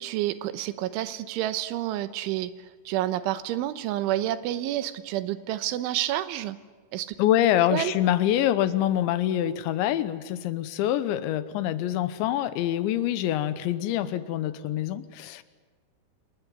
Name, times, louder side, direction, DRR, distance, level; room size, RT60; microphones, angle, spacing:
voice 1, 0.0-2.5 2.9-6.6 6.9-7.2 7.7-7.9, right 13 dB, 85° right, 13 dB, 3.5 m, -29 dB
voice 2, 7.2-15.4, left 12 dB, 80° left, 13 dB, 3.2 m, -25 dB
27.5 x 20.0 x 9.9 m, 1.4 s
omnidirectional pair, 5.4 m